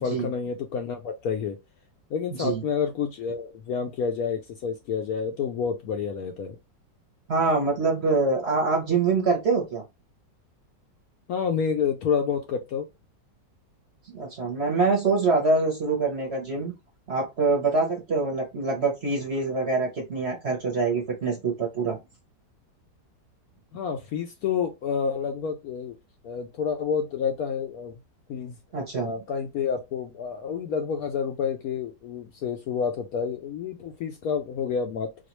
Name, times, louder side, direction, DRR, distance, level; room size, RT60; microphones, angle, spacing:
voice 1, 0.0-1.6 2.1-6.6 11.3-12.9 23.7-26.0 26.2-27.9 28.3-28.6 29.0-35.2, left 6 dB, 70° left, 0.9 m, -29 dB
voice 2, 7.3-9.8 14.1-16.7 17.1-22.0 28.7-29.1, right 3 dB, 45° right, 0.9 m, -25 dB
4.1 x 2.4 x 3.0 m
omnidirectional pair, 1.9 m